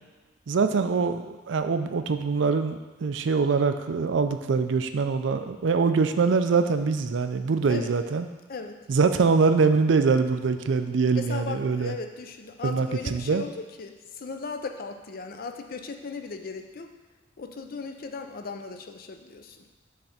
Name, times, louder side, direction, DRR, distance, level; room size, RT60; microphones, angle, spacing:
voice 1, 0.5-8.3 8.9-11.9 12.6-13.5, right 4 dB, 75° right, 9 dB, 0.4 m, -24 dB
voice 2, 11.1-16.9 17.4-19.7, left 4 dB, 50° left, 6 dB, 0.5 m, -37 dB
6.5 x 3.4 x 5.7 m, 1.2 s
head